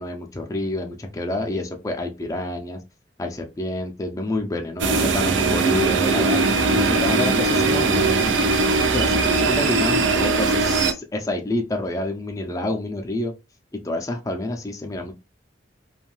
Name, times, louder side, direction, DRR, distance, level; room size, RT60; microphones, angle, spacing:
voice 1, 0.0-2.8 3.2-6.4 6.8-8.1 8.9-13.3 13.8-15.1, left 1 dB, 20° left, 3 dB, 0.4 m, -28 dB
sound 1, 4.8-10.9, right 3 dB, 90° right, 0.5 m, -20 dB
2.6 x 2.3 x 3.1 m, 0.27 s
head